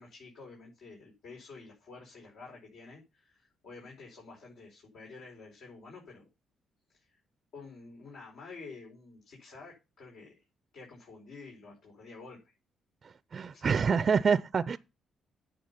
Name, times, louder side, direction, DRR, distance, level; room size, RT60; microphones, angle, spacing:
voice 1, 0.0-6.3 6.9-7.2 7.5-10.4 10.7-12.5 13.5-13.6, left 4 dB, 75° left, 5.0 m, -50 dB
voice 2, 13.0-14.8, right 6 dB, 45° right, 0.5 m, -27 dB
9.5 x 6.9 x 5.6 m
cardioid pair, 90°, 0 cm